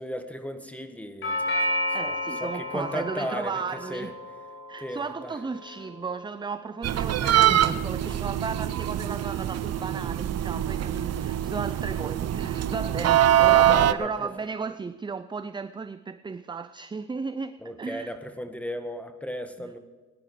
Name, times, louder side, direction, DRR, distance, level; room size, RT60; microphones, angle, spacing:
voice 1, 0.0-2.2 2.4-3.6 3.9-4.1 4.8-5.3 7.2-7.8 8.0-8.2 13.5-14.3 17.6-19.8, equal, 5° left, 1.7 m, -35 dB
Doorbell, 1.2-9.3, left 1 dB, 45° left, 5.1 m, -34 dB
voice 2, 1.9-4.2 4.7-18.1 19.6-19.7, right 5 dB, 15° right, 0.5 m, -35 dB
sound 1, 6.8-13.9, right 11 dB, 55° right, 0.7 m, -24 dB
18.0 x 10.5 x 4.9 m
cardioid pair, 90°, 30 cm